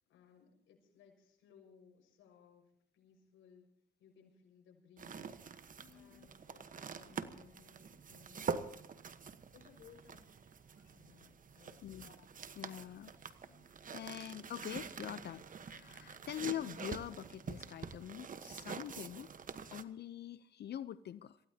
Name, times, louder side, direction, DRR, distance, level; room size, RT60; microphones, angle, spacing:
voice 1, 0.1-3.7 4.0-8.8 9.5-10.4 10.9-12.2, left 7 dB, 85° left, 2 dB, 6.1 m, -63 dB
sound 1, 5.0-19.8, right 6 dB, 40° right, 1.2 m, -46 dB
voice 2, 5.8-6.3 10.8-10.9 11.8-12.3 12.5-13.1 13.5-19.3 19.7-21.4, left 11 dB, 55° left, 14 dB, 0.6 m, -45 dB
27.5 x 16.5 x 2.9 m, 0.73 s
cardioid pair, 90°, 20 cm